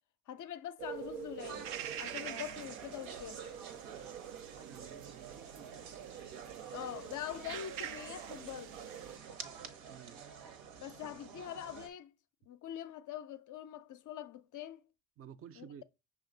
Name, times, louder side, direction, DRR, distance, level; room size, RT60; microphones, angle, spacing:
voice 1, 0.3-3.6 6.7-8.7 10.8-12.1 12.5-14.9 15.6-15.7, left 11 dB, 40° left, 0.5 m, -44 dB
sound 1, 0.8-9.2, right 9 dB, 85° right, 0.6 m, -46 dB
sound 2, 1.4-11.9, right 7 dB, 65° right, 1.0 m, -49 dB
voice 2, 4.7-6.2 9.9-10.2 15.2-15.8, right 8 dB, 30° right, 0.4 m, -53 dB
5.8 x 2.4 x 3.8 m
supercardioid pair, 70°, 49 cm